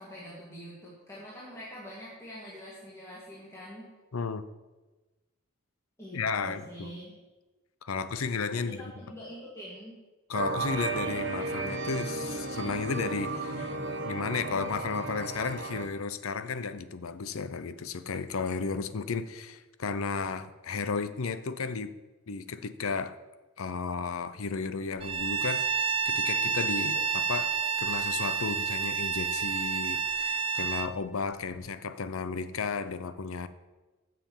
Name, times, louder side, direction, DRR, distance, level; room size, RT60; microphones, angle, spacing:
voice 1, 0.0-3.9 6.0-7.1 8.5-10.0, equal, 15° left, -7 dB, 2.0 m, -45 dB
voice 2, 4.1-4.5 6.1-7.0 7.8-8.8 10.3-13.8 14.0-21.9 22.3-23.1 23.6-33.5, left 4 dB, 80° left, 13 dB, 0.6 m, -34 dB
sound 1, 10.3-15.9, right 3 dB, 55° right, 1.3 m, -34 dB
Bowed string instrument, 25.0-30.9, right 6 dB, 25° right, 0.4 m, -29 dB
9.1 x 6.9 x 7.3 m, 1.2 s
head